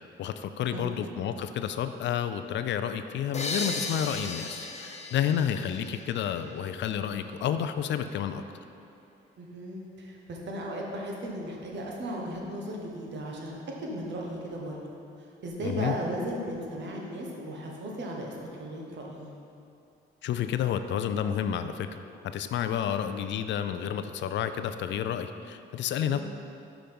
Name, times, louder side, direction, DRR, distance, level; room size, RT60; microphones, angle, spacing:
voice 1, 0.2-8.4 15.6-15.9 20.2-21.9 22.2-26.2, left 9 dB, 65° left, 10 dB, 0.4 m, -30 dB
sound 1, 3.3-6.9, left 3 dB, 35° left, 0.7 m, -36 dB
voice 2, 9.4-13.5 13.8-14.8 15.4-19.3 26.1-26.2, right 1 dB, 65° right, -1 dB, 1.3 m, -36 dB
5.9 x 5.0 x 5.3 m, 2.6 s
cardioid pair, 90°, 20 cm